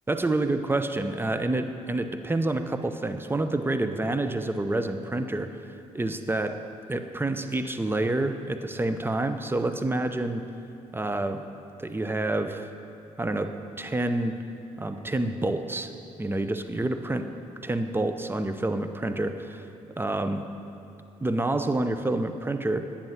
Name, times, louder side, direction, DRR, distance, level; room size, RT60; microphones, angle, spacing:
voice 1, 0.1-5.5 5.9-6.6 6.9-10.4 10.9-11.4 11.8-12.7 13.2-14.4 14.8-15.9 16.2-17.3 17.6-19.6 20.0-20.4 21.2-22.8, right 2 dB, 15° right, 9 dB, 0.8 m, -28 dB
11.0 x 8.6 x 5.8 m, 2.7 s
supercardioid pair, 65°, 14 cm